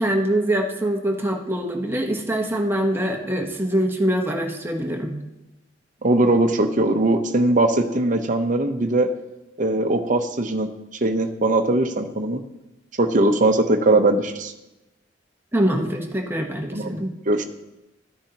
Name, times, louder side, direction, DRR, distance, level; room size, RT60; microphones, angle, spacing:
voice 1, 0.0-5.2 15.5-17.1, right 1 dB, 10° right, 2 dB, 1.0 m, -24 dB
voice 2, 6.0-9.1 9.6-10.7 11.0-12.4 13.0-14.5 16.7-17.0 17.3-17.4, right 2 dB, 40° right, 6 dB, 0.7 m, -20 dB
13.0 x 9.5 x 2.9 m, 1.0 s
head